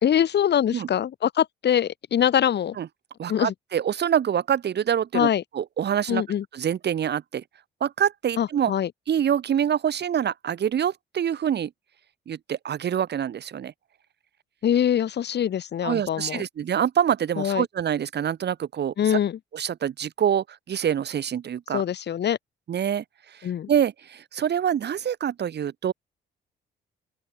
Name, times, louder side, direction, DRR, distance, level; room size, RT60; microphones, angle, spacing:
voice 1, 0.0-2.8 3.3-3.5 5.1-5.4 6.1-6.4 8.4-8.9 14.6-16.4 17.4-17.7 19.0-19.4 21.7-22.4 23.4-23.7, left 9 dB, 60° left, 2.1 m, -23 dB
voice 2, 3.2-5.3 5.5-6.2 6.5-7.4 7.8-8.7 9.1-11.7 12.3-13.7 15.8-19.2 19.5-21.8 22.7-25.9, right 9 dB, 60° right, 2.6 m, -26 dB
open air
cardioid pair, 90°, 20 cm